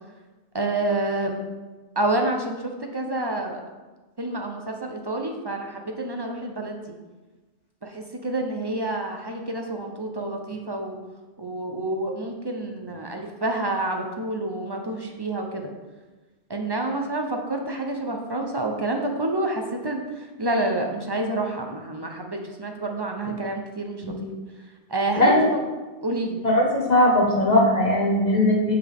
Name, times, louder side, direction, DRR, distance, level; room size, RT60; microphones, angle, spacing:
voice 1, 0.5-1.4 2.0-3.6 4.2-6.8 7.8-11.0 11.4-15.7 16.5-24.0 24.9-25.4 26.0-26.4, right 2 dB, 25° right, 3 dB, 0.6 m, -28 dB
voice 2, 25.2-25.5 26.4-28.8, left 1 dB, 35° left, -2 dB, 1.4 m, -19 dB
7.7 x 6.0 x 3.5 m, 1.2 s
omnidirectional pair, 1.2 m